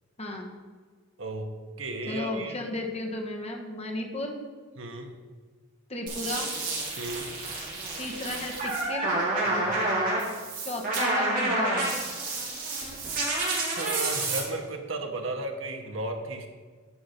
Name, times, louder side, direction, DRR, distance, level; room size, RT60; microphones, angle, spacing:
voice 1, 0.2-0.5 2.1-4.4 5.9-6.5 8.0-9.1 10.6-12.0, left 1 dB, 30° left, 1 dB, 1.3 m, -34 dB
voice 2, 1.2-1.5 1.8-2.6 4.8-5.1 7.0-7.3 9.4-9.8 13.6-16.5, right 2 dB, 70° right, 4 dB, 1.2 m, -34 dB
sound 1, 6.1-14.4, right 2 dB, 40° right, 3.1 m, -29 dB
10.0 x 5.2 x 5.8 m, 1.5 s
head